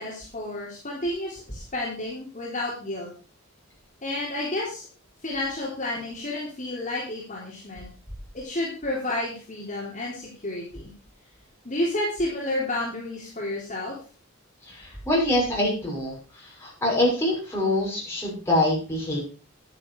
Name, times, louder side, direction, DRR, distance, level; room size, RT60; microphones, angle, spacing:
voice 1, 0.0-3.1 4.0-4.9 5.2-7.9 8.3-10.9 11.6-14.0, left 1 dB, 35° left, -4 dB, 3.6 m, -31 dB
voice 2, 15.1-16.1 16.6-19.2, left 1 dB, 10° left, -4 dB, 6.2 m, -24 dB
11.0 x 11.0 x 4.8 m, 0.36 s
head